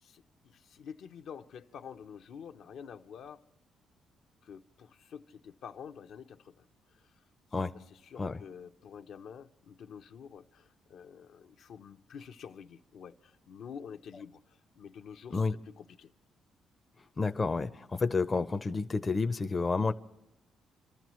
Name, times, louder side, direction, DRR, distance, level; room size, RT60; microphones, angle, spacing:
voice 1, 0.0-3.4 4.4-6.6 6.9-7.1 7.7-16.1, left 7 dB, 70° left, 0.7 m, -48 dB
voice 2, 17.2-19.9, left 4 dB, 25° left, 0.6 m, -30 dB
28.0 x 13.5 x 3.1 m
cardioid pair, 105°, 0 cm